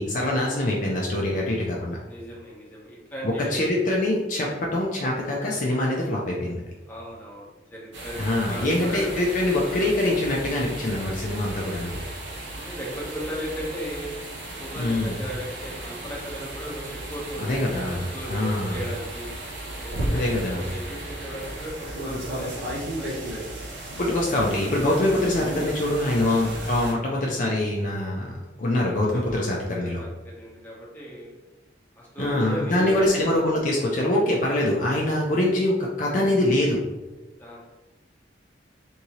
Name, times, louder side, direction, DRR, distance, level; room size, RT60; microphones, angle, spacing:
voice 1, 0.0-2.0 3.2-6.6 8.2-12.0 14.8-15.2 17.4-18.8 20.1-20.6 24.0-28.3 28.6-30.0 32.2-36.8, left 1 dB, 45° left, -3 dB, 0.4 m, -24 dB
voice 2, 2.0-3.7 6.9-8.2 8.5-9.2 9.4-9.6 12.5-14.1 14.6-19.3 19.8-23.6 29.0-31.3 32.0-33.1 33.4-33.5 35.2-35.4 37.4-37.7, equal, 10° left, -6 dB, 0.9 m, -37 dB
sound 1, 7.9-26.9, right 1 dB, 85° right, 0.7 m, -35 dB
3.6 x 2.7 x 2.9 m, 1.2 s
head